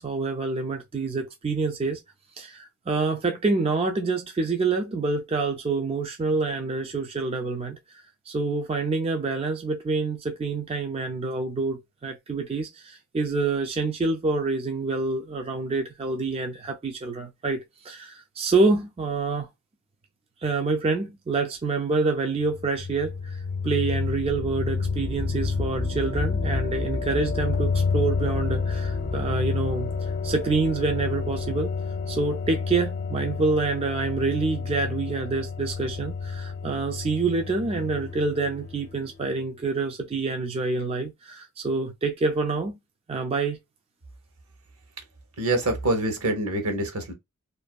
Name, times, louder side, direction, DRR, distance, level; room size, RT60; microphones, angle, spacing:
voice 1, 0.0-2.0 2.4-19.5 20.4-31.8 32.1-42.8 43.1-43.6, right 3 dB, 25° right, 0.3 m, -27 dB
sound 1, 22.4-39.1, left 4 dB, 55° left, 0.7 m, -29 dB
voice 2, 45.4-47.1, right 2 dB, 70° right, 0.9 m, -25 dB
2.5 x 2.5 x 2.2 m
head